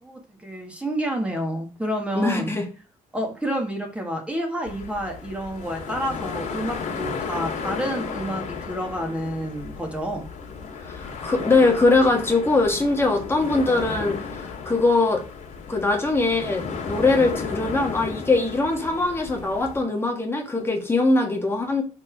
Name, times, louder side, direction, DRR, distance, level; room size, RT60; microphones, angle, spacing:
voice 1, 0.0-2.5 3.1-10.3, right 1 dB, 10° right, 1.6 m, -29 dB
voice 2, 2.1-2.6 10.8-15.2 15.7-21.8, left 3 dB, 15° left, 1.5 m, -22 dB
sound 1, 4.7-19.8, left 5 dB, 70° left, 1.9 m, -34 dB
5.6 x 4.5 x 4.5 m
cardioid pair, 125°, 13 cm